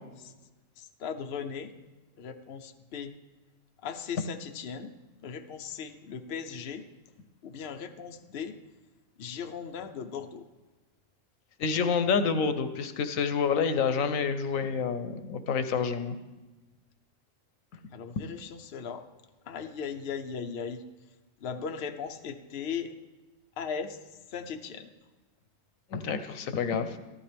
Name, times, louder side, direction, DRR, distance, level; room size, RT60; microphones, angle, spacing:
voice 1, 0.8-1.7 2.2-3.1 3.8-4.9 5.2-6.9 7.4-8.6 9.2-10.4 17.9-19.1 19.5-20.8 21.4-22.9 23.6-24.0 24.3-24.9, left 6 dB, 55° left, 6 dB, 0.9 m, -38 dB
voice 2, 11.6-16.2 25.9-27.0, left 6 dB, 85° left, 10 dB, 1.2 m, -28 dB
14.0 x 12.5 x 3.4 m, 1.2 s
omnidirectional pair, 1.4 m